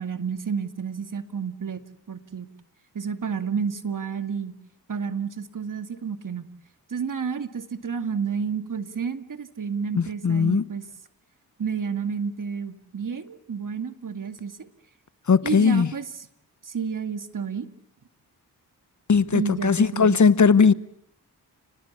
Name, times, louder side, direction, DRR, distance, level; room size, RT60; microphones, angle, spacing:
voice 1, 0.0-1.8 2.1-2.5 2.9-4.5 4.9-6.5 6.9-10.8 11.6-14.7 15.4-16.1 16.6-17.7 19.3-20.2, right 6 dB, 55° right, 2.1 m, -30 dB
voice 2, 9.9-10.6 15.3-15.9 19.1-20.7, left 5 dB, 50° left, 1.1 m, -19 dB
30.0 x 19.5 x 8.5 m
cardioid pair, 60°, 38 cm